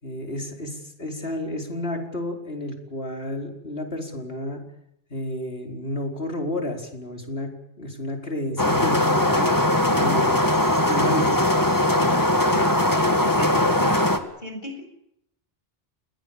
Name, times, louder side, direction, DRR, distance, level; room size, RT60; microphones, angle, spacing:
voice 1, 0.0-4.6 5.1-7.5 7.8-9.5 10.0-10.4 10.8-11.5, left 1 dB, 75° left, 3 dB, 5.1 m, -31 dB
sound 1, 8.6-14.2, left 1 dB, 20° left, 2.1 m, -20 dB
voice 2, 12.5-12.9 13.2-14.0 14.4-14.8, equal, 50° left, 5 dB, 7.6 m, -32 dB
30.0 x 20.5 x 7.4 m, 0.77 s
omnidirectional pair, 1.0 m